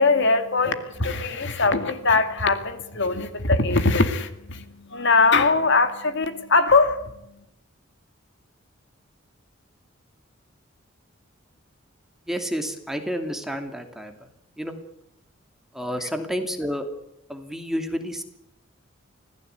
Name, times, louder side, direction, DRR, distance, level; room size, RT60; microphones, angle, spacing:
voice 1, 0.0-7.1, left 3 dB, 65° left, 9 dB, 2.3 m, -21 dB
voice 2, 12.3-14.3 14.6-14.7 15.7-16.9 17.3-18.2, equal, ahead, 5 dB, 2.7 m, -30 dB
26.0 x 17.0 x 8.2 m, 0.82 s
head